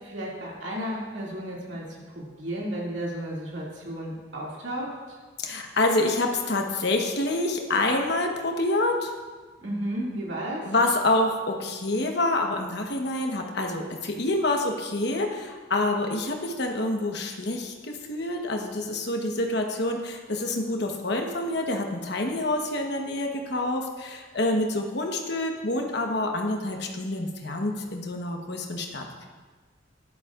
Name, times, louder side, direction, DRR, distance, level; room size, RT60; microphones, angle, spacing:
voice 1, 0.0-5.2 9.6-10.7, right 1 dB, 70° right, -4 dB, 2.4 m, -33 dB
voice 2, 5.4-9.1 10.6-29.2, left 2 dB, 60° left, 2 dB, 1.1 m, -27 dB
11.5 x 10.5 x 2.5 m, 1.4 s
head